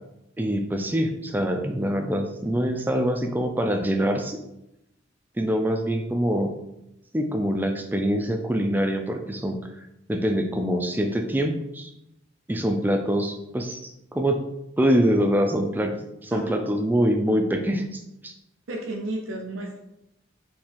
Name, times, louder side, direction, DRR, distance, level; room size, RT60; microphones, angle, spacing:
voice 1, 0.4-4.4 5.4-6.5 7.1-9.6 10.1-11.9 12.5-14.4 14.8-18.3, equal, 10° right, 5 dB, 0.3 m, -24 dB
voice 2, 18.7-19.8, right 2 dB, 75° right, 1 dB, 0.5 m, -32 dB
3.6 x 2.8 x 4.3 m, 0.87 s
head